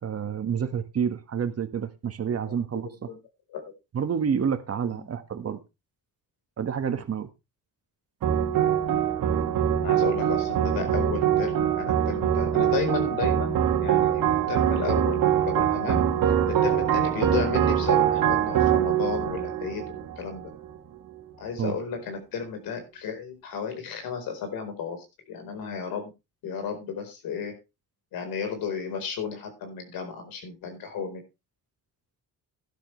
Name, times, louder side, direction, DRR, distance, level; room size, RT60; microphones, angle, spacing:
voice 1, 0.0-2.9 3.9-5.6 6.6-7.3 21.6-21.7, right 7 dB, 45° right, 9 dB, 1.7 m, -28 dB
sound 1, 8.2-20.7, right 10 dB, 70° right, 2.2 m, -23 dB
voice 2, 9.8-19.8 20.2-20.5 21.4-26.1 26.4-27.5 28.1-31.2, left 6 dB, 85° left, 6 dB, 4.5 m, -33 dB
12.5 x 12.0 x 3.3 m, 0.27 s
cardioid pair, 105°, 34 cm